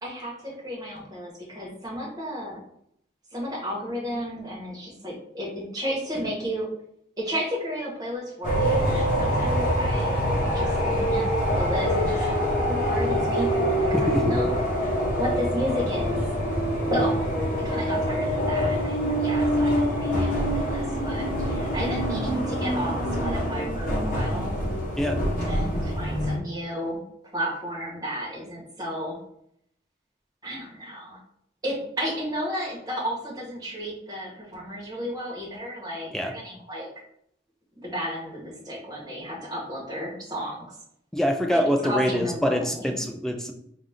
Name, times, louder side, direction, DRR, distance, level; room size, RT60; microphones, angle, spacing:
voice 1, 0.0-2.6 3.3-6.7 7.2-12.4 12.6-14.5 15.2-16.2 16.9-17.3 17.6-24.6 25.4-27.0 27.3-29.2 30.4-31.2 31.6-36.9 37.8-40.8 41.5-42.9, equal, 20° right, -4 dB, 1.3 m, -33 dB
sound 1, 8.4-26.4, equal, 45° left, 0.9 m, -25 dB
voice 2, 13.9-14.4 25.0-25.2 36.1-36.3 41.1-43.5, equal, 5° left, 3 dB, 0.3 m, -24 dB
4.2 x 2.4 x 3.5 m, 0.72 s
head